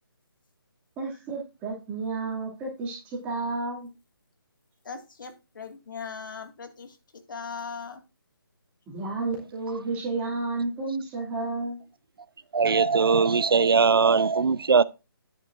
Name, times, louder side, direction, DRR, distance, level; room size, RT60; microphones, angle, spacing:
voice 1, 1.0-3.9 8.9-11.8, right 3 dB, 15° right, 2.4 m, -31 dB
voice 2, 4.8-8.0, left 5 dB, 55° left, 2.1 m, -39 dB
voice 3, 12.5-14.8, right 5 dB, 70° right, 0.6 m, -20 dB
11.0 x 9.0 x 2.5 m
figure-of-eight pair, 155°, 12 cm